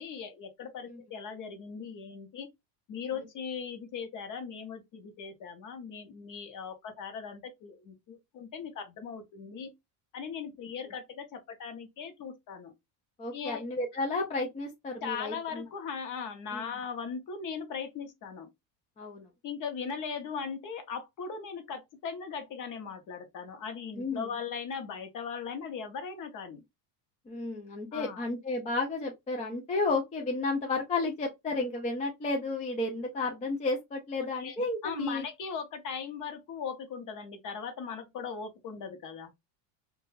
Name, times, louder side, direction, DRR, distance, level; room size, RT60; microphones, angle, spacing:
voice 1, 0.0-2.5 2.9-9.7 10.1-12.7 13.3-13.6 15.0-18.5 19.4-26.6 27.9-28.3 34.2-39.3, left 6 dB, 40° left, 0.7 m, -39 dB
voice 2, 13.2-15.6 16.5-16.7 19.0-19.3 24.0-24.3 27.3-35.2, left 3 dB, 15° left, 0.3 m, -32 dB
2.4 x 2.3 x 3.0 m
supercardioid pair, 120°, 49 cm